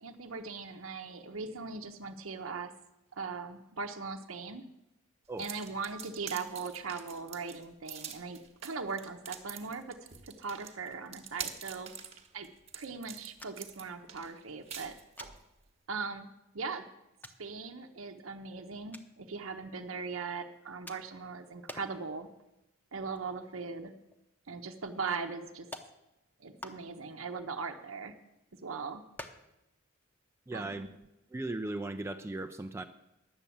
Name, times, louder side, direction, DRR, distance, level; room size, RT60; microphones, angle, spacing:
voice 1, 0.0-2.7 3.1-4.6 5.4-10.0 10.4-11.9 12.3-12.5 12.7-15.0 15.9-16.3 16.5-16.8 17.4-22.3 22.9-23.9 24.5-25.7 26.4-28.1 28.6-29.0 30.5-30.9, right 4 dB, 75° right, 5 dB, 0.8 m, -39 dB
sound 1, 5.4-15.4, right 7 dB, 30° right, 1.1 m, -45 dB
sound 2, 13.4-13.8 14.1-14.2 15.2-15.4 16.2-16.3 17.2-17.4 18.9-19.1 20.9-21.3 21.7-22.1 22.4-22.6 22.9-23.8 24.1-24.2 25.1-25.2 25.7-25.9 26.6-27.2 27.6-28.4 29.1-29.6 29.9-30.0 30.3-30.4 30.8-31.0, left 1 dB, 10° left, 0.8 m, -48 dB
voice 2, 30.5-30.9 31.3-32.9, right 2 dB, 15° right, 8 dB, 0.4 m, -37 dB
10.5 x 7.1 x 8.5 m, 0.93 s
head